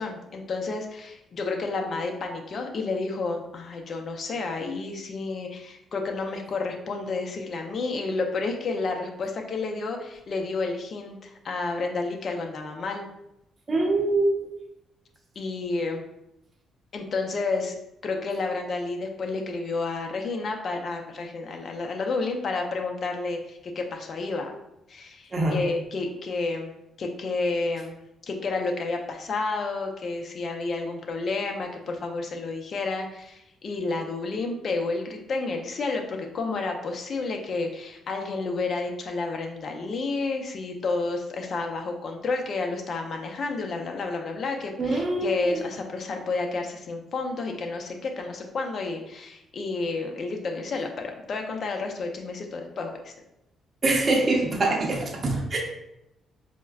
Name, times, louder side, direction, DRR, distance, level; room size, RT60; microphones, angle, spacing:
voice 1, 0.0-13.0 15.4-16.0 16.9-17.8 18.0-24.5 24.9-26.7 27.0-28.0 28.3-53.1, left 3 dB, 50° left, 3 dB, 0.5 m, -30 dB
voice 2, 13.7-14.5 25.3-25.6 44.8-45.6 53.8-55.6, right 2 dB, 40° right, -1 dB, 0.6 m, -24 dB
4.4 x 2.1 x 2.3 m, 0.85 s
cardioid pair, 90°, 0 cm